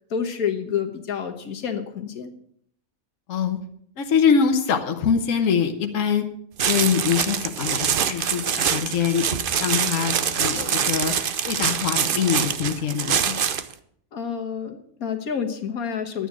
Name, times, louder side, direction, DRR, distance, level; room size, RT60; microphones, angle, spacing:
voice 1, 0.1-2.3 14.1-16.3, left 7 dB, 80° left, 4 dB, 1.7 m, -28 dB
voice 2, 4.0-6.2 6.6-9.3 9.5-11.1 11.4-13.3, left 7 dB, 65° left, 5 dB, 1.4 m, -23 dB
sound 1, 6.6-13.7, right 7 dB, 50° right, 0.7 m, -24 dB
11.5 x 9.4 x 6.1 m, 0.65 s
omnidirectional pair, 1.5 m